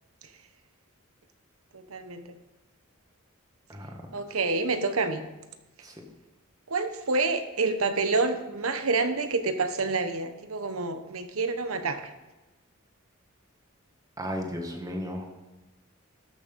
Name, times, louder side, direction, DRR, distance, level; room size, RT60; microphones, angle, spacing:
voice 1, 1.7-2.3 4.1-5.2 6.7-12.1, right 3 dB, 85° right, 8 dB, 1.1 m, -28 dB
voice 2, 14.2-15.3, equal, 15° right, 2 dB, 1.7 m, -35 dB
12.5 x 6.5 x 5.3 m, 1.1 s
head